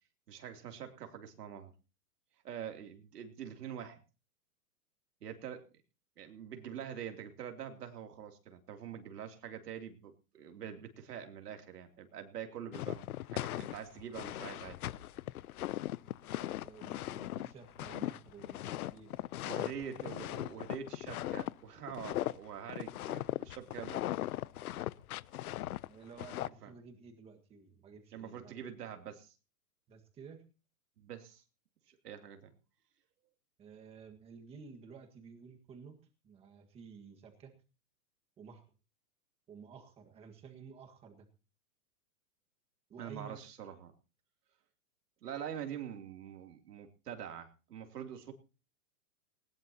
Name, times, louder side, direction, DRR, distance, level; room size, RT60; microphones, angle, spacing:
voice 1, 0.3-1.7 2.4-4.0 5.2-5.7 6.2-13.0 13.3-14.8 19.4-24.0 26.6-26.7 28.1-29.3 31.0-31.4 31.9-32.5 43.0-43.9 45.2-48.3, right 8 dB, 85° right, 5 dB, 3.0 m, -45 dB
sound 1, 12.7-21.5 21.9-22.4 22.7-26.5, left 14 dB, 70° left, 0.7 m, -38 dB
voice 2, 16.3-19.2 25.8-28.5 29.9-30.4 33.6-36.0 36.2-37.5 38.4-38.6 39.5-41.3 42.9-43.4, right 5 dB, 15° right, 5 dB, 1.6 m, -53 dB
19.5 x 19.0 x 2.9 m, 0.34 s
supercardioid pair, 170°, 46 cm